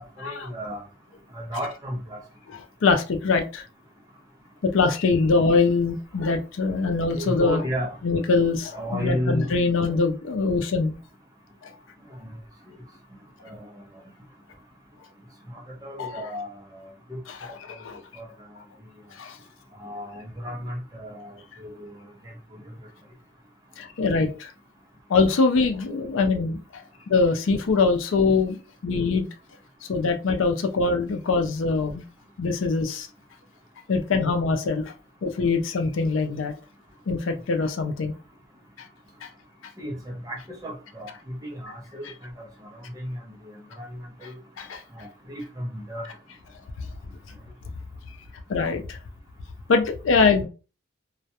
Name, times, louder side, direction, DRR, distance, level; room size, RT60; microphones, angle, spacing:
voice 1, 0.2-0.8 1.3-2.2 7.2-8.0 8.7-9.5 13.4-13.7 15.5-17.8 18.2-18.3 19.8-22.0 39.8-42.1 42.9-43.2 43.8-44.4 44.9-46.1, equal, 15° right, 0.5 m, -33 dB
voice 2, 2.5-3.6 4.6-7.6 8.0-10.9 11.6-11.7 16.0-16.2 17.4-18.0 19.2-19.4 23.8-24.5 25.1-28.6 28.8-29.3 29.9-32.1 32.4-33.1 33.9-34.9 35.2-36.5 37.1-38.1 39.2-39.3 44.6-44.8 48.5-49.0 49.7-50.5, left 4 dB, 70° left, 0.4 m, -23 dB
2.3 x 2.1 x 2.7 m
head